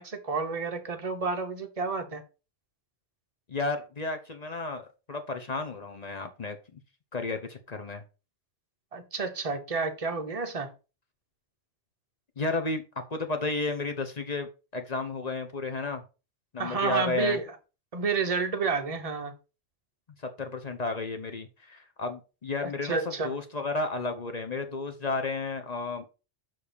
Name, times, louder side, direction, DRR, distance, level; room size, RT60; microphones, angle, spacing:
voice 1, 0.0-2.2 8.9-10.7 16.6-17.5 17.9-19.3 22.6-23.3, right 4 dB, 30° right, 1.0 m, -30 dB
voice 2, 3.5-6.8 7.1-8.0 12.4-16.0 16.5-17.4 20.4-26.1, left 3 dB, 35° left, 1.0 m, -32 dB
5.8 x 4.8 x 5.2 m
omnidirectional pair, 1.2 m